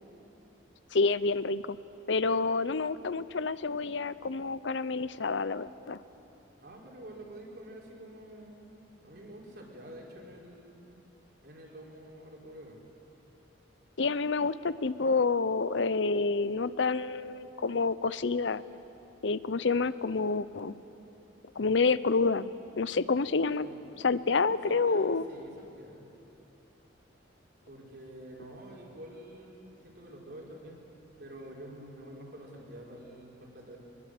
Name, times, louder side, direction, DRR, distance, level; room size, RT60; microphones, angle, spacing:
voice 1, 0.9-1.8 2.1-6.0 14.0-18.6 19.2-20.7 21.6-22.5 22.8-23.7 24.0-25.3, left 4 dB, 65° left, 16 dB, 0.7 m, -28 dB
voice 2, 6.6-11.0 11.4-12.8 23.6-26.1 27.7-30.8 31.2-33.8, right 1 dB, 55° right, -2 dB, 4.7 m, -48 dB
24.0 x 21.0 x 7.8 m, 2.9 s
head